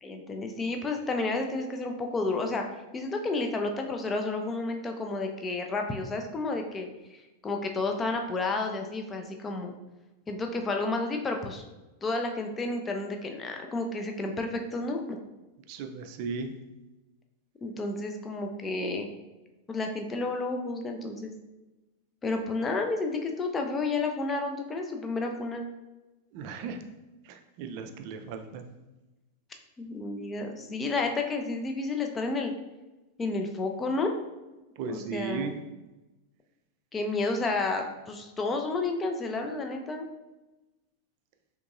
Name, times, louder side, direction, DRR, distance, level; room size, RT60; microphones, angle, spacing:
voice 1, 0.0-2.7 2.9-9.7 10.3-11.6 12.0-15.2 17.6-19.1 19.7-21.3 22.2-25.7 29.8-32.5 33.2-34.1 34.9-35.6 36.9-40.1, left 3 dB, 20° left, 3 dB, 0.4 m, -31 dB
voice 2, 15.7-16.5 26.3-26.8 27.2-28.7 34.8-35.6, right 5 dB, 45° right, 7 dB, 0.3 m, -36 dB
3.5 x 2.9 x 2.5 m, 1.1 s
figure-of-eight pair, 90°, 0 cm